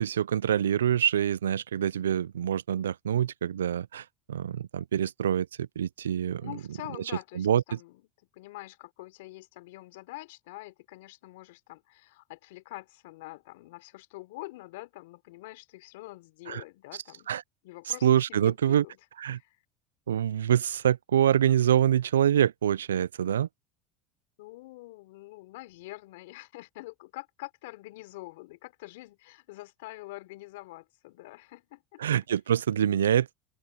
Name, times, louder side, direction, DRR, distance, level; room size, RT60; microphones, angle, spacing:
voice 1, 0.0-6.4 7.4-7.6 16.5-16.6 17.3-17.4 18.0-18.8 19.2-19.4 20.1-23.5 32.0-33.4, right 10 dB, 90° right, 0.4 m, -25 dB
voice 2, 6.4-8.0 8.3-17.3 17.6-19.0 19.3-19.6 24.4-32.0, left 20 dB, 75° left, 3.9 m, -45 dB
open air
hypercardioid pair, 80°, 0 cm